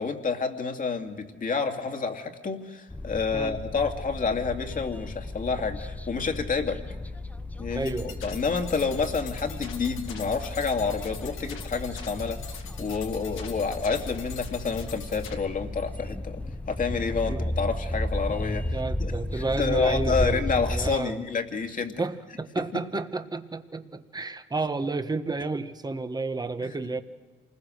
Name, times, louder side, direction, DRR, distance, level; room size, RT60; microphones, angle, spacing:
voice 1, 0.0-6.8 7.6-7.9 8.2-12.4 12.8-16.4 16.7-22.0 22.6-22.8 26.6-26.7, left 5 dB, 45° left, 4 dB, 2.5 m, -29 dB
sound 1, 2.9-21.0, left 1 dB, 5° left, 0.7 m, -34 dB
voice 2, 7.7-8.2 17.3-17.4 18.7-20.4 20.7-21.1 22.0-27.0, right 3 dB, 20° right, 9 dB, 1.4 m, -31 dB
sound 2, 7.9-15.3, left 7 dB, 90° left, 2.2 m, -43 dB
27.5 x 20.5 x 6.4 m, 1.4 s
cardioid pair, 90°, 20 cm